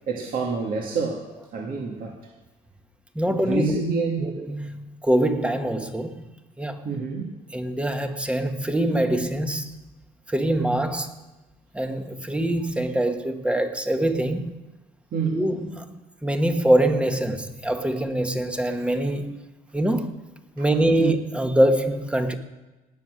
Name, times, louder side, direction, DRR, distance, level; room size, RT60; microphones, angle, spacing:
voice 1, 0.1-1.2 1.5-2.2 3.4-4.3 6.8-7.3 15.1-15.4 20.6-20.7 21.0-21.2, right 4 dB, 55° right, 2.1 m, -27 dB
voice 2, 3.1-3.8 4.2-6.2 6.6-6.9 7.5-9.7 10.3-11.2 11.7-14.6 15.3-19.4 19.7-20.2 20.6-22.3, right 1 dB, 5° right, 1.3 m, -24 dB
19.0 x 6.8 x 6.3 m
cardioid pair, 110°, 17 cm